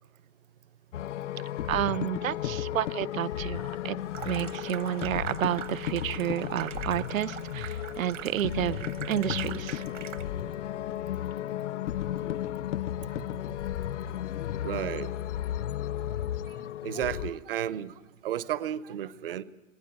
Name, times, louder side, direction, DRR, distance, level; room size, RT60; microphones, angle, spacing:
sound 1, 0.9-17.3, left 12 dB, 65° left, 0.6 m, -34 dB
voice 1, 1.7-4.0 4.2-9.8, right 12 dB, 90° right, 14 dB, 0.8 m, -30 dB
Water tap faucet / Sink (filling or washing), 4.0-10.5, right 10 dB, 65° right, 1.3 m, -42 dB
voice 2, 8.4-8.7 13.1-13.2 14.6-15.1 16.8-17.9 18.2-19.4, right 11 dB, 45° right, 16 dB, 0.7 m, -33 dB
21.0 x 16.0 x 8.7 m, 1.2 s
hypercardioid pair, 180°, 39 cm